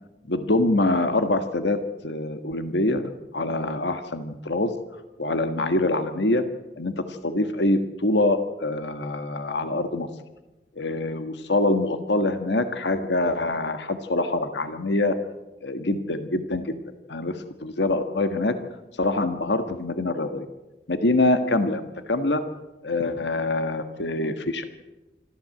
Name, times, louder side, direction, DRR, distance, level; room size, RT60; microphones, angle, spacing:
voice 1, 0.3-4.7 5.2-6.4 6.8-10.1 10.8-15.2 15.6-16.7 17.1-18.5 19.0-20.5 20.9-22.4 22.8-24.6, left 2 dB, 85° left, 8 dB, 1.5 m, -25 dB
25.5 x 14.0 x 7.8 m, 1.1 s
head